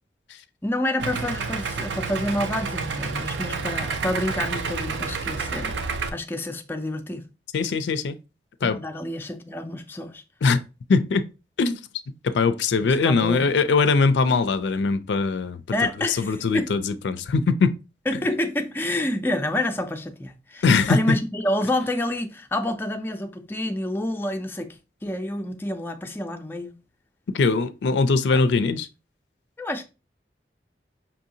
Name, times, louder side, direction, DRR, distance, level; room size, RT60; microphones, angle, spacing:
voice 1, 0.6-5.8 6.1-7.2 8.6-10.2 12.8-13.5 15.7-16.7 18.1-26.7 28.3-28.4 29.6-29.8, left 1 dB, 10° left, 0.4 m, -28 dB
Idling, 1.0-6.1, right 4 dB, 90° right, 0.5 m, -29 dB
voice 2, 7.5-8.2 8.6-8.8 10.4-10.6 10.9-11.3 11.6-11.9 12.2-15.6 16.1-17.7 20.6-21.0 27.3-28.9, left 4 dB, 85° left, 0.4 m, -21 dB
5.5 x 2.7 x 2.7 m
head